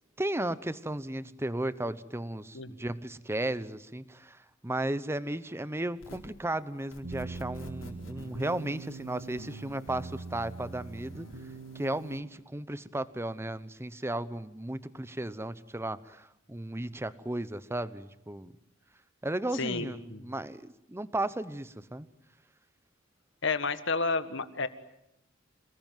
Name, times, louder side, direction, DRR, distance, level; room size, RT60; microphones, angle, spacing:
voice 1, 0.2-11.3 11.7-18.5 19.2-22.1, right 1 dB, 15° right, 15 dB, 0.9 m, -35 dB
sound 1, 6.0-6.4 6.9-12.2, left 1 dB, 85° left, 4.6 m, -52 dB
sound 2, 7.0-12.2, right 3 dB, 85° right, 1.9 m, -43 dB
voice 2, 19.5-20.2 23.4-24.7, left 4 dB, 65° left, 12 dB, 1.7 m, -31 dB
28.0 x 19.5 x 9.3 m, 0.82 s
head